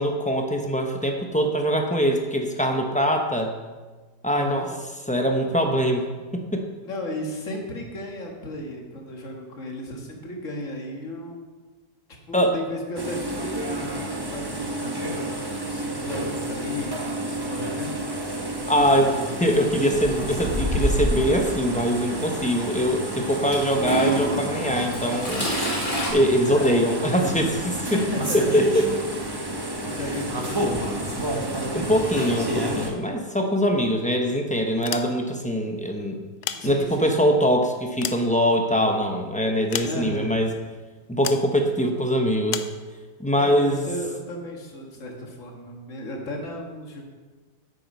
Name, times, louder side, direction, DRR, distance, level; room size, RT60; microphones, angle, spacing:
voice 1, 0.0-3.5 4.2-4.7 5.1-6.7 12.3-12.5 18.7-19.1 19.4-25.5 26.1-28.0 28.3-28.9 31.7-36.2 36.6-40.5 41.1-42.6 43.2-43.9, equal, 10° left, 3 dB, 0.4 m, -23 dB
voice 2, 4.3-4.7 6.8-11.5 12.3-18.1 18.8-19.2 26.5-26.8 27.1-27.4 27.9-28.6 29.8-31.5 36.5-37.4 39.8-40.4 43.4-47.0, left 1 dB, 50° left, 1 dB, 1.9 m, -34 dB
sound 1, 13.0-32.9, right 1 dB, 15° right, 0.9 m, -30 dB
Toilet flush / Trickle dribble, 20.4-21.3 22.3-22.4 23.7-26.1, right 1 dB, 30° left, 2.4 m, -26 dB
sound 2, 34.7-35.5 36.2-37.2 37.7-38.9 39.7-40.4 41.2-41.5 42.5-42.8, left 10 dB, 75° left, 1.1 m, -33 dB
8.8 x 8.5 x 5.4 m, 1.3 s
omnidirectional pair, 1.8 m